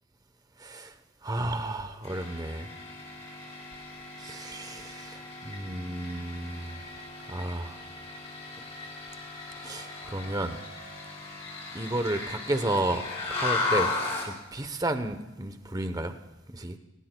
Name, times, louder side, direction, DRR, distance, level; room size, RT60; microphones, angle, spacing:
voice 1, 0.6-0.9 1.2-2.7 4.2-6.8 7.3-7.8 9.6-10.6 11.7-13.9 14.2-16.2 16.5-16.8, right 1 dB, 20° right, 9 dB, 0.8 m, -32 dB
sound 1, 2.0-14.4, left 3 dB, 30° left, 4.5 m, -36 dB
20.5 x 18.5 x 2.2 m, 1.1 s
head